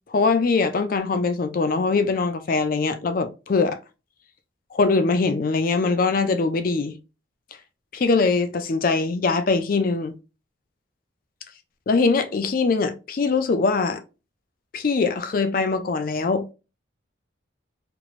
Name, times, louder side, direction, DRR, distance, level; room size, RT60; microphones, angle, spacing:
voice 1, 0.1-3.8 4.7-7.0 7.9-10.1 11.9-14.0 14.7-16.5, left 4 dB, 45° left, 0.4 m, -22 dB
3.0 x 3.0 x 2.4 m
head